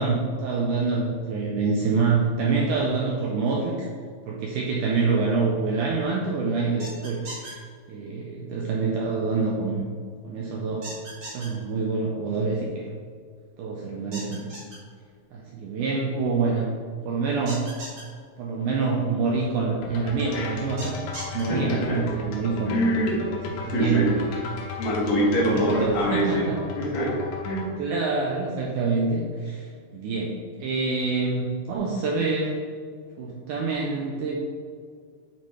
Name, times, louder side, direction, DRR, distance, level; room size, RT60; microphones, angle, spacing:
voice 1, 0.0-3.9 4.3-7.6 7.9-9.8 10.2-10.9 11.3-12.9 13.6-14.5 15.3-16.7 17.0-17.7 18.4-21.0 21.3-22.8 23.5-24.3 25.5-26.6 27.8-32.6 33.2-34.3, right 4 dB, 80° right, -2 dB, 1.8 m, -26 dB
sound 1, 6.8-7.5 10.8-11.5 14.1-14.8 17.5-18.0 20.8-21.4, right 2 dB, 45° right, 2.3 m, -37 dB
sound 2, 19.8-27.7, left 5 dB, 85° left, 2.8 m, -37 dB
voice 2, 21.5-22.0 22.7-23.3 23.7-24.1 24.8-26.4 26.8-27.1 27.4-27.7, equal, 70° left, -5 dB, 3.0 m, -24 dB
9.5 x 4.2 x 3.2 m, 2.1 s
omnidirectional pair, 4.3 m